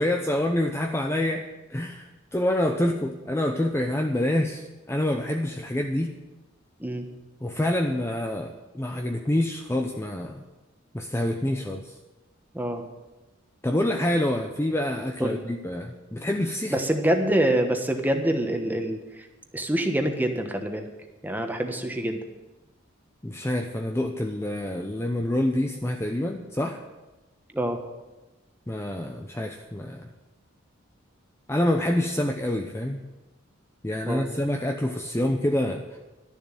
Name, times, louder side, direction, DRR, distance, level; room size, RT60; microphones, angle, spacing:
voice 1, 0.0-1.4 1.7-6.1 7.4-10.4 10.9-12.0 13.6-16.7 23.2-26.8 28.7-30.1 31.5-33.1 33.8-36.0, left 1 dB, 15° left, 3 dB, 0.6 m, -27 dB
voice 2, 16.7-19.3 19.5-20.9 21.2-22.2 27.5-27.8 34.1-34.3, right 1 dB, 10° right, 4 dB, 1.2 m, -26 dB
12.0 x 7.1 x 9.0 m, 1.1 s
head